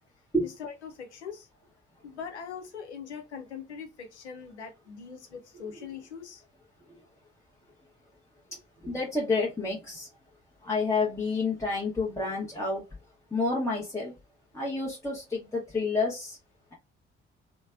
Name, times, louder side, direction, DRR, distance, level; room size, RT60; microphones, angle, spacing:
voice 1, 0.6-1.5 2.0-6.4, left 6 dB, 85° left, 0.6 m, -41 dB
voice 2, 8.8-10.1 10.6-12.8 13.3-14.1 14.5-16.4, left 3 dB, 10° left, 0.8 m, -29 dB
3.1 x 2.0 x 2.3 m
figure-of-eight pair, 40°, 33 cm